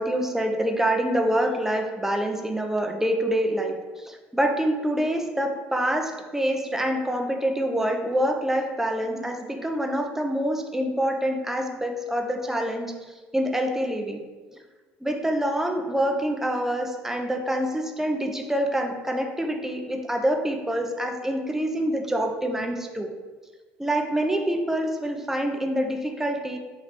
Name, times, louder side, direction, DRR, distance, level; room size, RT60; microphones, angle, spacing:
voice 1, 0.0-12.9 13.3-14.2 15.0-23.1 23.8-26.6, right 1 dB, 5° right, 4 dB, 0.5 m, -26 dB
3.1 x 2.9 x 4.1 m, 1.3 s
hypercardioid pair, 60°, 6 cm